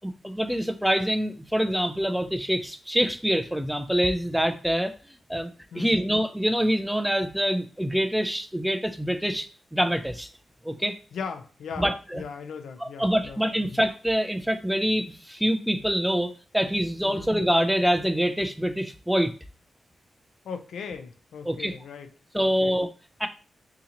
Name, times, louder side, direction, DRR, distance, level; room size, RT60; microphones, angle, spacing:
voice 1, 0.0-4.9 5.3-5.5 5.7-10.3 10.6-11.0 11.8-12.2 12.8-19.3 21.4-21.8 22.3-22.9 23.2-23.3, equal, 5° right, 8 dB, 0.4 m, -25 dB
voice 2, 5.7-6.1 11.1-13.8 17.0-17.3 20.4-22.1 22.4-22.8, left 6 dB, 90° left, 7 dB, 0.5 m, -38 dB
3.8 x 2.8 x 2.9 m, 0.37 s
wide cardioid pair, 125°, 0 cm